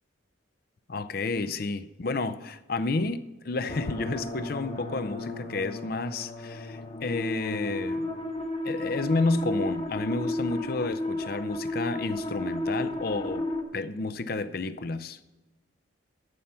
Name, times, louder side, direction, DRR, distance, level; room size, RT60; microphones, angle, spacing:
voice 1, 0.9-8.1 8.6-13.5 13.7-15.2, left 3 dB, 50° left, 0.5 m, -31 dB
sound 1, 3.7-13.6, left 2 dB, 35° left, 1.1 m, -33 dB
14.0 x 5.8 x 5.6 m
head